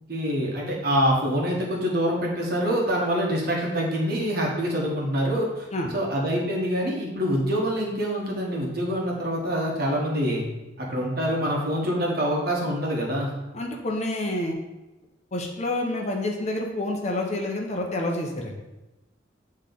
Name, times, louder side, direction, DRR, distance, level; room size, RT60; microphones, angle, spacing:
voice 1, 0.1-5.7 5.9-10.4 10.8-13.3, equal, 50° right, -2 dB, 1.4 m, -25 dB
voice 2, 13.5-14.6 15.3-18.5, left 1 dB, 35° left, 1 dB, 0.8 m, -28 dB
8.7 x 3.2 x 3.9 m, 1.0 s
head